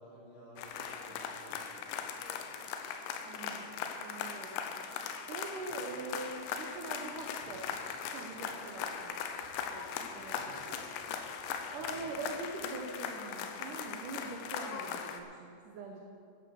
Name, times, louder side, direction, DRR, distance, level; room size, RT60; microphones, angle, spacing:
voice 1, 0.0-1.9 2.2-2.3 5.9-6.0 10.3-10.6 11.9-12.0, right 1 dB, 65° left, -6 dB, 5.6 m, -55 dB
sound 1, 0.6-15.2, left 7 dB, 85° left, 3.1 m, -40 dB
voice 2, 3.2-3.7 4.0-4.6 5.3-7.7 8.1-9.2 9.7-10.9 11.7-16.0, right 3 dB, 85° right, 1 dB, 1.8 m, -43 dB
11.5 x 11.0 x 6.4 m, 2.5 s
omnidirectional pair, 5.1 m